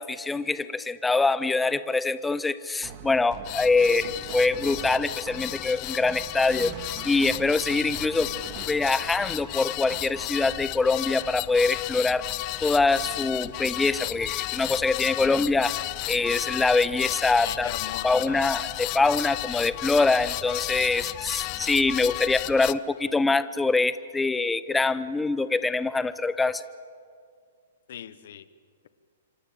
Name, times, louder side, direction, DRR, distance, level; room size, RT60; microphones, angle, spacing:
voice 1, 0.0-6.7 7.0-8.3 8.7-12.3 12.6-15.7 16.1-17.7 18.0-26.6, left 3 dB, 10° left, 15 dB, 0.8 m, -24 dB
sound 1, 2.8-10.6, right 9 dB, 40° right, 2.0 m, -43 dB
sound 2, 3.4-22.7, left 21 dB, 40° left, 0.7 m, -33 dB
voice 2, 17.4-18.5 27.9-28.4, left 10 dB, 65° left, 14 dB, 1.3 m, -39 dB
27.0 x 26.0 x 7.6 m, 2.2 s
hypercardioid pair, 125°, 0 cm